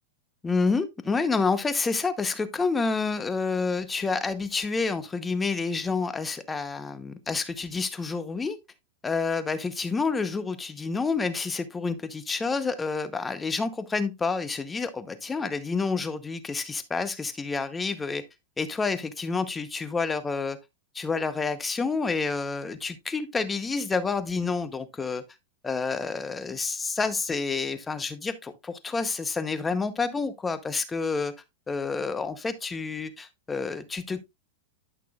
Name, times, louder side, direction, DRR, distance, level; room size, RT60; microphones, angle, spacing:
voice 1, 0.4-8.6 9.0-18.2 18.6-20.6 20.9-25.2 25.6-31.3 31.7-34.2, left 4 dB, 15° left, 0.8 m, -29 dB
11.5 x 6.0 x 2.3 m
hypercardioid pair, 130°, 0 cm